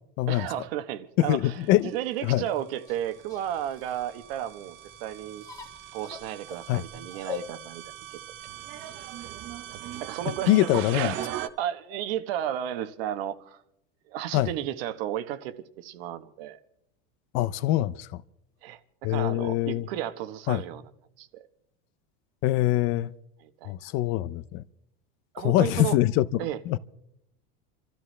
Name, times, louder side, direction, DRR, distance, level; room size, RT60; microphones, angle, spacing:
voice 1, 0.3-5.4 5.9-7.8 10.0-11.1 11.6-13.6 14.1-16.6 18.6-20.9 21.2-21.4 23.4-23.9 25.3-26.0 26.4-26.6, right 11 dB, 75° right, 1.2 m, -33 dB
voice 2, 1.2-1.9 2.2-2.4 6.7-6.8 10.5-11.1 14.3-14.5 17.3-18.2 19.0-19.9 20.5-20.6 22.4-23.1 23.7-24.6 25.4-26.3 26.7-26.8, left 15 dB, 45° left, 0.5 m, -24 dB
sound 1, 2.5-11.5, right 13 dB, 45° right, 0.8 m, -40 dB
sound 2, 2.9-10.0, left 7 dB, 10° left, 1.7 m, -46 dB
28.5 x 13.5 x 3.2 m
supercardioid pair, 160°, 30 cm